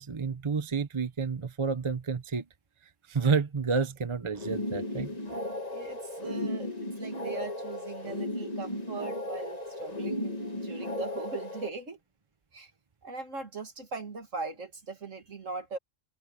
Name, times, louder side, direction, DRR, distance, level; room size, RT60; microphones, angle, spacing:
voice 1, 0.0-2.4 3.1-5.1, right 5 dB, 30° right, 0.7 m, -30 dB
sound 1, 4.3-11.7, left 1 dB, 30° left, 2.1 m, -35 dB
voice 2, 5.7-12.0 12.5-12.7 13.0-15.8, right 4 dB, 70° right, 2.7 m, -40 dB
open air
omnidirectional pair, 1.4 m